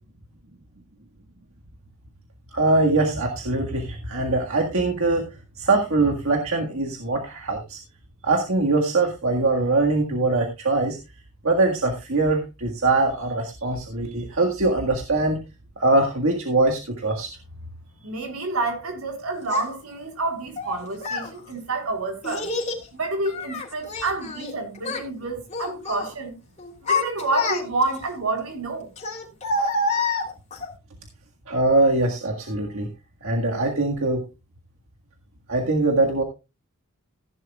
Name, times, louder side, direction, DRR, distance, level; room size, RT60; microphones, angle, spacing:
voice 1, 2.5-5.3 5.6-7.8 8.2-11.0 11.4-15.4 15.8-17.3 31.5-32.9 33.2-34.2 35.5-36.2, right 2 dB, 70° right, 1.8 m, -22 dB
voice 2, 18.0-22.5 22.9-26.3 26.8-28.9, right 3 dB, 90° right, 3.9 m, -28 dB
Child speech kid speaking, 19.5-19.6 20.6-21.3 22.2-22.8 23.3-24.5 24.8-25.1 25.5-26.1 26.6-28.0 29.0-30.7, left 3 dB, 35° left, 3.3 m, -27 dB
15.5 x 10.5 x 2.4 m
head